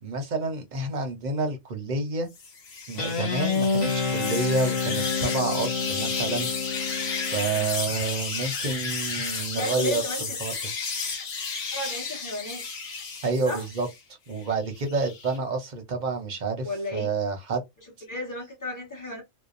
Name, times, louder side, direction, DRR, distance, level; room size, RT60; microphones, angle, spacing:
voice 1, 0.0-2.3 2.9-6.5 7.3-10.0 10.4-10.7 13.2-13.9 14.3-17.6, right 4 dB, 50° right, 0.6 m, -29 dB
sound 1, 2.3-14.0 14.4-15.4, left 5 dB, 60° left, 1.0 m, -33 dB
Guitar, 3.0-7.7, left 5 dB, 40° left, 0.5 m, -28 dB
voice 2, 9.5-10.2 11.7-12.7 13.4-13.6 16.6-17.1 18.1-19.2, left 1 dB, 15° left, 1.0 m, -32 dB
2.7 x 2.0 x 2.4 m
omnidirectional pair, 1.3 m